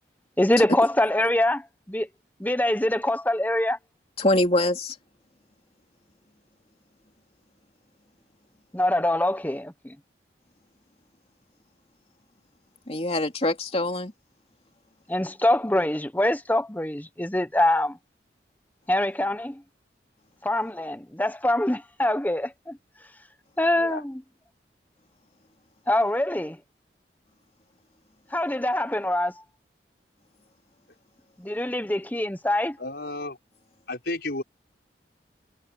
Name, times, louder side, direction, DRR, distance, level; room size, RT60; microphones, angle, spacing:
voice 1, 0.4-1.6 1.9-2.1 2.4-3.8 8.7-9.9 15.1-18.0 18.9-19.6 20.4-22.8 23.6-24.2 25.9-26.6 28.3-29.3 31.4-32.8, left 1 dB, 10° left, 1.1 m, -24 dB
voice 2, 4.2-5.0 12.9-14.1, left 1 dB, 35° left, 3.1 m, -24 dB
voice 3, 32.8-33.4 33.9-34.4, left 2 dB, 65° left, 5.8 m, -32 dB
head